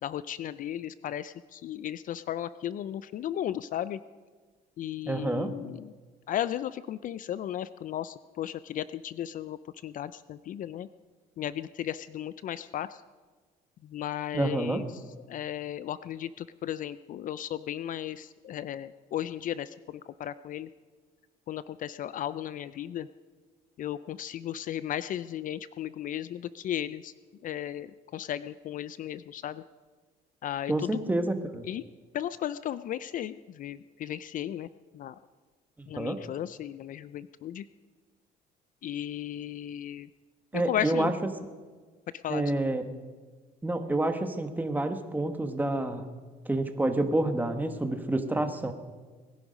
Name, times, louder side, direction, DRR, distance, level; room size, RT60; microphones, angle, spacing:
voice 1, 0.0-4.0 4.8-5.9 6.3-10.9 11.4-13.0 13.8-15.0 15.3-20.7 21.5-23.1 23.8-27.1 27.4-29.6 30.4-31.0 31.6-31.8 32.1-35.2 35.9-37.7 38.8-40.1 40.5-41.1 42.1-42.4, left 11 dB, 50° left, 15 dB, 0.4 m, -35 dB
voice 2, 5.1-5.5 14.3-14.8 30.7-31.7 35.8-36.2 40.5-41.1 42.3-42.8 43.6-46.0 46.5-48.7, right 2 dB, 10° right, 7 dB, 1.3 m, -28 dB
21.0 x 11.0 x 5.2 m, 1.4 s
cardioid pair, 110°, 17 cm